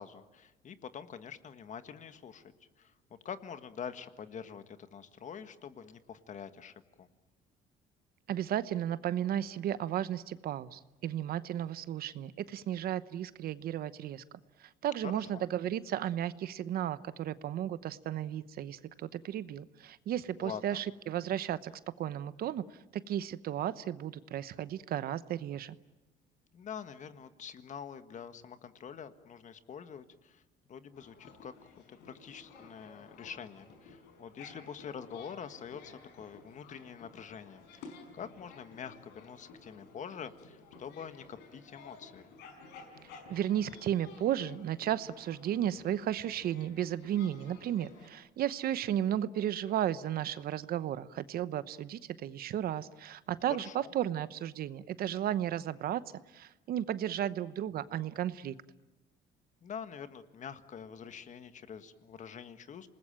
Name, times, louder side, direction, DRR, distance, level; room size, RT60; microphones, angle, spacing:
voice 1, 0.0-7.1 15.0-15.5 20.4-20.8 26.5-30.4 30.7-31.5 31.9-42.3 53.5-53.9 59.6-62.9, left 7 dB, 45° left, 10 dB, 1.6 m, -46 dB
voice 2, 8.3-14.2 14.6-21.7 22.0-22.6 22.9-25.7 43.3-56.0 56.3-58.5, right 11 dB, 65° right, 15 dB, 1.0 m, -34 dB
sound 1, 30.9-48.1, left 4 dB, 85° left, 5.4 m, -54 dB
27.5 x 20.0 x 9.0 m, 1.0 s
cardioid pair, 110°, 17 cm